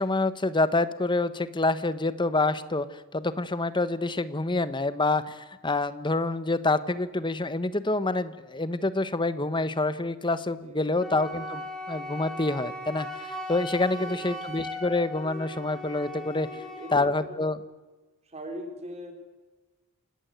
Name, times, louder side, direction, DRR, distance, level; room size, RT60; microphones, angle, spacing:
voice 1, 0.0-16.5 16.9-17.6, left 2 dB, 20° left, 13 dB, 1.2 m, -27 dB
voice 2, 10.6-11.1 13.9-14.2 16.5-17.4 18.3-19.1, equal, 30° right, 4 dB, 3.8 m, -41 dB
Wind instrument woodwind instrument, 11.0-17.0, left 1 dB, 5° left, 4.5 m, -38 dB
28.0 x 18.0 x 9.4 m, 1.2 s
head